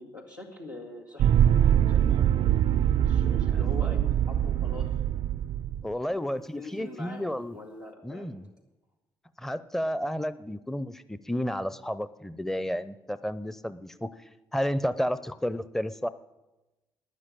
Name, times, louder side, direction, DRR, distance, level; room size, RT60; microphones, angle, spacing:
voice 1, 0.0-1.4 1.9-2.5 2.9-4.9 6.5-8.3, left 1 dB, 90° left, -4 dB, 2.0 m, -43 dB
sound 1, 1.2-5.8, right 10 dB, 55° right, 0.5 m, -23 dB
voice 2, 3.5-4.0 5.8-7.6 8.0-8.5 9.4-14.1 14.5-16.1, equal, 5° left, 15 dB, 0.7 m, -31 dB
12.5 x 9.9 x 8.9 m, 1.1 s
figure-of-eight pair, 40°, 10 cm